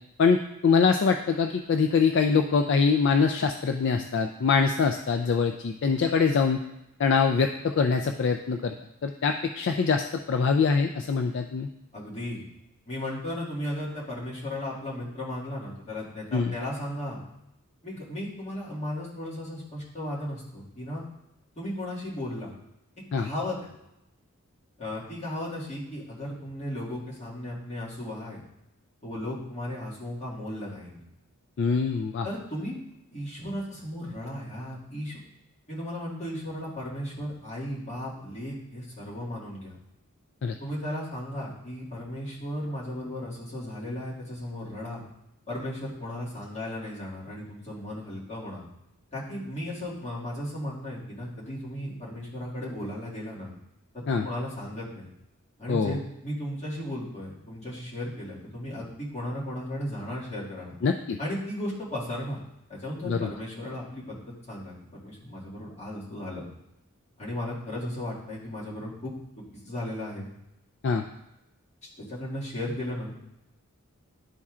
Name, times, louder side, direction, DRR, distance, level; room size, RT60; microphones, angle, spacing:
voice 1, 0.2-6.6 7.0-8.7 9.0-11.7 16.3-16.5 23.1-23.3 31.6-32.3 40.4-40.6 54.1-54.3 55.7-56.0 60.8-61.2 63.1-63.3 70.8-71.0, left 5 dB, 55° left, 5 dB, 0.3 m, -24 dB
voice 2, 11.9-12.5 12.9-17.2 17.8-21.0 21.6-22.5 23.2-23.7 24.8-28.4 29.0-31.0 32.2-32.8 33.1-35.2 35.7-39.8 40.6-45.0 45.5-48.6 49.1-53.5 53.9-55.1 55.6-60.7 61.2-62.4 62.7-64.2 64.5-66.4 67.2-69.1 69.6-70.3 72.0-73.1, left 1 dB, 30° left, -8 dB, 2.0 m, -35 dB
11.0 x 4.3 x 2.4 m, 0.89 s
head